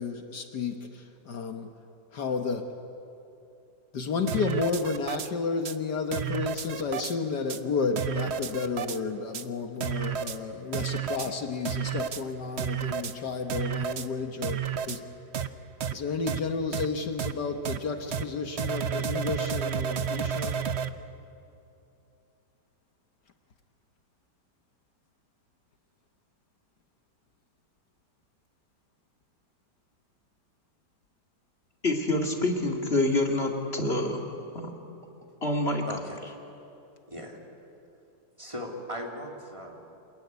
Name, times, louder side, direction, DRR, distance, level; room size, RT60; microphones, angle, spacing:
voice 1, 0.0-1.7 2.1-2.7 3.9-15.0 15.9-20.6, left 4 dB, 65° left, 5 dB, 1.8 m, -32 dB
sound 1, 4.3-5.3 5.6-5.7 6.1-7.1 7.5-7.6 8.0-9.0 9.3-9.4 9.8-10.4 10.7-11.3 11.6-12.2 12.6-13.1 13.5-14.1 14.4-15.0 15.3-15.5 15.8-15.9 16.3-16.4 16.7-16.9 17.2-17.3 17.6-17.8 18.1-18.2 18.6-20.9, right 8 dB, 50° right, 0.8 m, -31 dB
voice 2, 31.8-34.3 34.5-34.7 35.4-35.9, left 2 dB, 35° left, 1 dB, 2.5 m, -26 dB
voice 3, 35.9-36.2 37.1-37.4 38.4-40.0, equal, 15° right, -1 dB, 3.1 m, -38 dB
26.5 x 21.0 x 9.6 m, 2.7 s
omnidirectional pair, 2.0 m